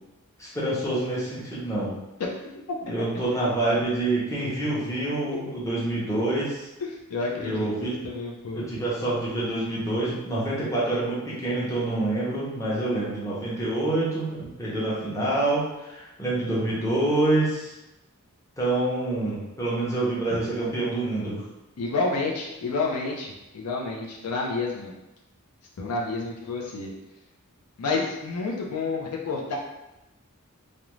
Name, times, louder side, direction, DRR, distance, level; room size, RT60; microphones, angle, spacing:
voice 1, 0.4-1.9 2.8-6.7 7.4-7.9 8.5-17.7 18.6-21.3, right 2 dB, 15° left, -7 dB, 0.7 m, -27 dB
voice 2, 6.8-8.9 21.8-24.9 25.8-26.9 27.8-29.6, left 3 dB, 85° left, -1 dB, 0.5 m, -30 dB
2.5 x 2.1 x 3.0 m, 0.97 s
head